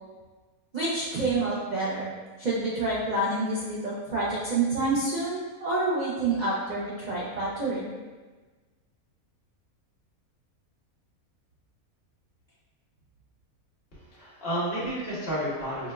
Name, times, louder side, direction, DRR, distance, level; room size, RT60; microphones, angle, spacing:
voice 1, 0.7-2.1 2.4-7.9, right 2 dB, 85° right, -7 dB, 0.3 m, -28 dB
voice 2, 13.9-15.9, equal, 45° left, -6 dB, 1.0 m, -31 dB
4.8 x 2.2 x 2.2 m, 1.3 s
omnidirectional pair, 1.5 m